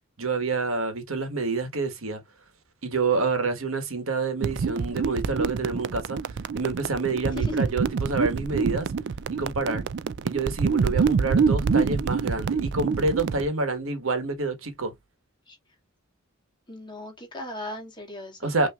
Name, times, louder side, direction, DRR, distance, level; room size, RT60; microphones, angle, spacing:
voice 1, 0.2-2.2 2.8-6.2 6.5-8.9 9.3-9.8 10.2-14.9 18.4-18.7, right 3 dB, 75° right, 1.4 m, -27 dB
sound 1, 4.4-13.5, right 5 dB, 55° right, 0.4 m, -26 dB
voice 2, 10.8-11.2 15.5-15.6 16.7-18.7, left 1 dB, 20° left, 1.9 m, -38 dB
5.6 x 3.0 x 2.3 m
head